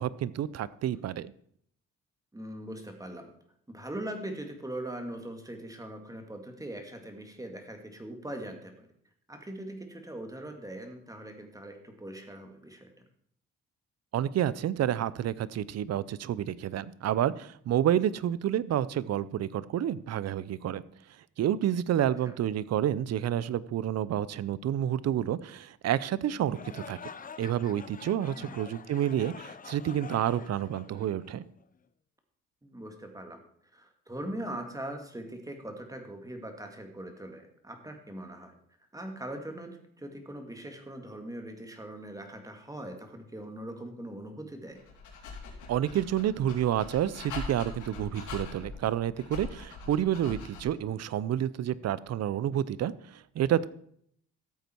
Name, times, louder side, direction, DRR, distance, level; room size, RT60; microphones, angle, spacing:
voice 1, 0.0-1.3 14.1-20.8 21.4-27.0 27.4-31.4 45.7-53.7, right 11 dB, 60° right, 19 dB, 0.6 m, -29 dB
voice 2, 2.3-3.3 3.7-8.9 9.3-12.9 22.0-22.3 28.4-28.6 32.6-33.4 33.7-38.5 38.9-44.8, right 1 dB, 10° right, 5 dB, 2.2 m, -41 dB
sound 1, 26.4-31.7, left 6 dB, 30° left, 0.6 m, -46 dB
Dog, 44.7-50.8, left 4 dB, 80° left, 3.7 m, -42 dB
14.0 x 8.1 x 4.5 m, 0.66 s
cardioid pair, 90°, 30 cm